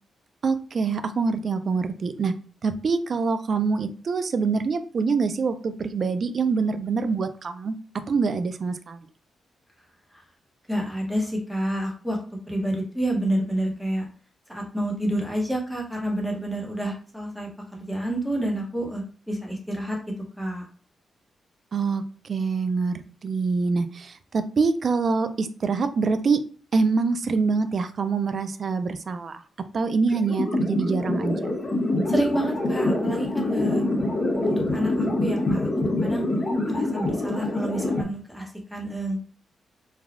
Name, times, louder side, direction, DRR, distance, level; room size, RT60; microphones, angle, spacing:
voice 1, 0.4-2.3 2.6-7.7 8.1-9.0 21.7-26.4 26.7-29.4 29.7-31.4, right 4 dB, 50° right, 10 dB, 0.3 m, -25 dB
voice 2, 10.7-12.2 12.5-14.0 14.5-20.0 20.4-20.6 32.1-33.8 34.4-35.7 36.0-36.2 36.7-39.3, right 1 dB, ahead, -2 dB, 0.9 m, -28 dB
sound 1, 30.1-38.0, left 2 dB, 40° left, 1.0 m, -25 dB
3.2 x 2.3 x 2.4 m, 0.41 s
cardioid pair, 110°, 0 cm